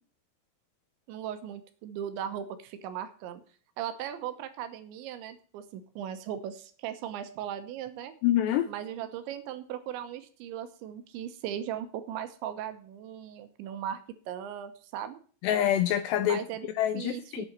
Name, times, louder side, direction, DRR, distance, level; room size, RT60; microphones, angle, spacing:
voice 1, 1.1-3.4 3.8-8.1 8.7-14.0 14.3-15.2 16.2-16.7 16.9-17.5, right 10 dB, 80° right, 9 dB, 3.1 m, -38 dB
voice 2, 8.2-8.7 15.4-16.4 16.8-17.5, left 11 dB, 80° left, 10 dB, 2.5 m, -26 dB
8.8 x 7.6 x 8.0 m, 0.42 s
omnidirectional pair, 5.5 m